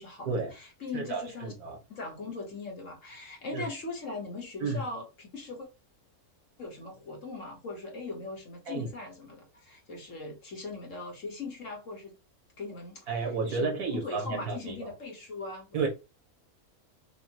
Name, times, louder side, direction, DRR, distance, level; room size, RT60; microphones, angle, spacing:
voice 1, 0.0-1.5 1.9-5.7 6.6-12.1 12.6-15.9, left 3 dB, 55° left, 1.8 m, -40 dB
voice 2, 0.9-1.8 3.5-3.7 4.6-4.8 8.7-8.9 13.1-14.9 15.7-15.9, right 4 dB, 85° right, 2.2 m, -32 dB
6.2 x 2.5 x 3.0 m
omnidirectional pair, 1.6 m